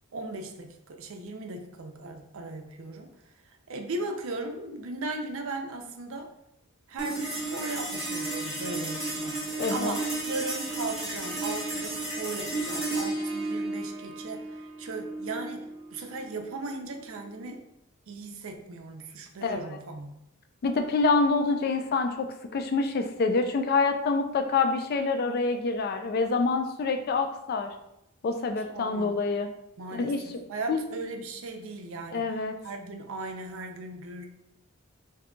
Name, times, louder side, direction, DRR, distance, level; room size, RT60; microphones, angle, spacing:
voice 1, 0.1-3.1 3.5-6.3 6.9-17.6 18.1-20.2 28.7-29.2 29.8-32.2 32.6-34.3, right 2 dB, 60° right, 4 dB, 0.5 m, -37 dB
sound 1, 7.0-17.6, right 2 dB, ahead, 0.6 m, -33 dB
voice 2, 9.6-10.0 19.4-19.6 20.6-27.7 28.2-29.5 29.9-30.2 30.7-30.8 32.1-32.6, left 4 dB, 45° left, 6 dB, 0.3 m, -26 dB
2.7 x 2.3 x 3.7 m, 0.83 s
head